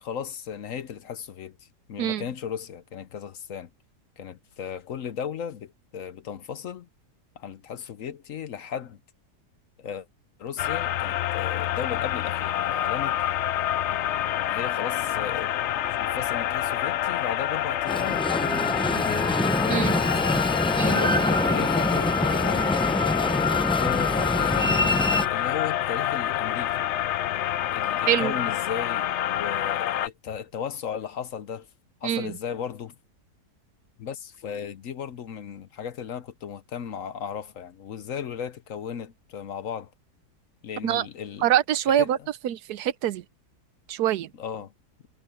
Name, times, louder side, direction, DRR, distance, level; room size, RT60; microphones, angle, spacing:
voice 1, 0.0-1.6 1.9-3.7 4.2-6.9 7.4-9.0 9.8-10.1 10.4-13.2 14.4-15.5 16.0-19.4 19.6-20.5 20.8-22.9 23.8-26.9 27.7-31.7 32.0-33.0 34.0-39.9 40.6-41.5 41.9-42.1 44.4-44.7, left 8 dB, 60° left, 1.0 m, -35 dB
sound 1, 10.6-30.1, left 12 dB, 75° left, 0.6 m, -27 dB
Train, 17.9-25.3, left 1 dB, 5° left, 0.3 m, -25 dB
voice 2, 19.7-20.0 20.8-21.0 28.1-28.4 32.0-32.3 40.8-41.1 41.4-43.2 43.9-44.3, right 11 dB, 75° right, 1.2 m, -25 dB
omnidirectional pair, 1.8 m